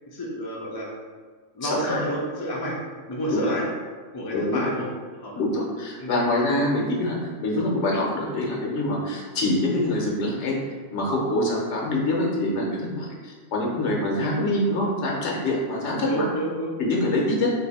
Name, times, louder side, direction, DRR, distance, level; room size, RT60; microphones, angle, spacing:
voice 1, 0.1-0.9 1.5-2.8 3.1-3.7 4.1-4.9 5.1-5.4 6.0-6.2 16.0-16.8 17.3-17.5, equal, 30° left, -3 dB, 0.4 m, -29 dB
voice 2, 1.6-2.0 3.3-3.4 4.3-4.7 5.3-10.6 10.9-16.2 16.9-17.5, left 1 dB, 75° left, -3 dB, 1.1 m, -25 dB
2.7 x 2.6 x 4.0 m, 1.5 s
omnidirectional pair, 1.2 m